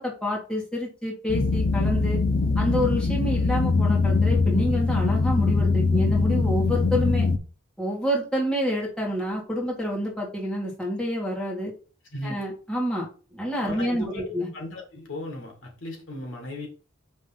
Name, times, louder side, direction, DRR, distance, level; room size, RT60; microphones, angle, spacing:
voice 1, 0.0-2.2 2.6-7.3 7.8-11.7 12.2-14.5, equal, 5° left, 1.6 m, -28 dB
sound 1, 1.3-7.4, left 3 dB, 45° left, 0.7 m, -22 dB
voice 2, 12.1-12.5 13.7-16.7, left 1 dB, 65° left, 1.7 m, -36 dB
5.3 x 3.1 x 5.6 m
head